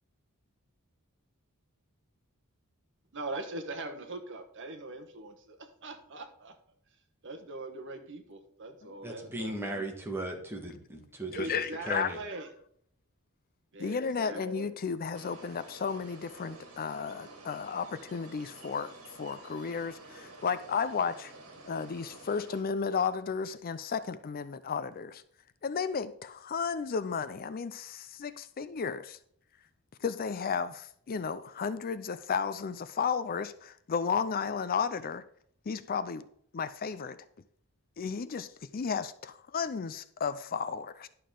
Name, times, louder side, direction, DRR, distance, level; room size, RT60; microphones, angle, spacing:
voice 1, 3.1-6.5 7.2-9.9 11.3-12.5 13.7-14.7, right 2 dB, 55° right, 6 dB, 1.3 m, -41 dB
voice 2, 9.0-11.5 11.9-12.2, right 1 dB, 10° right, 1 dB, 1.6 m, -37 dB
voice 3, 11.3-12.1 13.8-18.9 19.2-21.3 21.7-25.2 25.6-29.2 30.0-35.2 35.7-36.2 36.5-37.2 38.0-41.1, left 6 dB, 40° left, 14 dB, 0.4 m, -33 dB
sound 1, 15.1-22.6, right 2 dB, 75° right, 2.1 m, -50 dB
11.0 x 6.7 x 3.8 m, 0.66 s
head